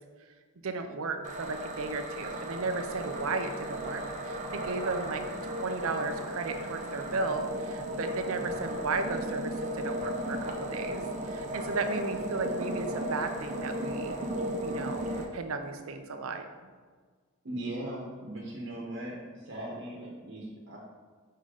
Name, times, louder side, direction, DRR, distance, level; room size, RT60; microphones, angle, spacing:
voice 1, 0.6-14.2 14.6-16.4, right 3 dB, 80° right, 7 dB, 0.6 m, -35 dB
sound 1, 1.2-15.3, equal, 35° right, 0.7 m, -35 dB
voice 2, 17.4-20.8, right 1 dB, 65° right, -3 dB, 1.1 m, -39 dB
5.5 x 3.9 x 4.9 m, 1.5 s
head